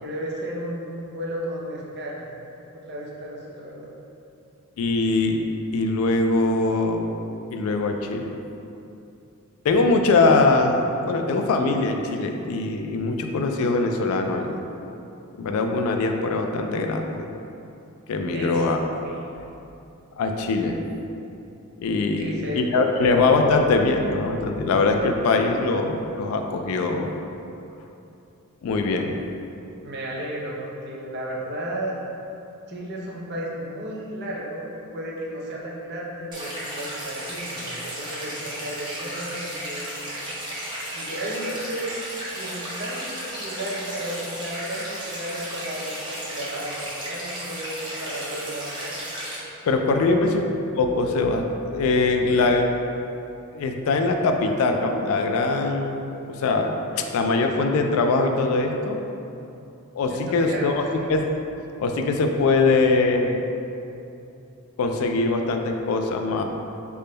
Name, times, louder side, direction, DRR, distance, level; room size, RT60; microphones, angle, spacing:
voice 1, 0.0-2.3 2.7-3.9 18.3-18.6 19.0-19.4 22.2-23.2 29.8-31.9 32.7-39.9 40.9-41.9 42.4-49.0 49.9-50.3 52.2-52.4 60.1-61.1, right 1 dB, 50° right, -4 dB, 0.6 m, -34 dB
voice 2, 4.8-5.4 5.7-7.1 7.5-8.4 9.6-15.0 15.4-17.2 18.1-18.8 20.2-20.8 21.8-27.2 28.6-29.1 49.7-50.3 50.8-52.7 53.5-59.0 59.9-60.8 61.1-61.3 61.8-63.4 64.8-66.4, left 3 dB, 70° left, 4 dB, 0.3 m, -22 dB
sound 1, 36.3-49.4, right 1 dB, 20° right, 0.7 m, -34 dB
3.5 x 2.2 x 3.8 m, 2.8 s
head